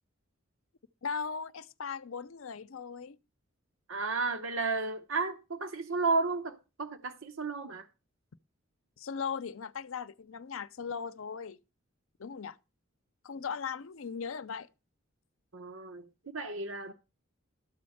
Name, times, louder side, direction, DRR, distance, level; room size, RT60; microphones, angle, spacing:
voice 1, 1.0-3.2 9.0-11.6 12.2-12.6 13.2-14.7, left 6 dB, 80° left, 0.6 m, -38 dB
voice 2, 3.9-7.9 15.5-16.0 16.3-16.9, right 3 dB, 80° right, 0.9 m, -33 dB
13.0 x 4.3 x 7.8 m
head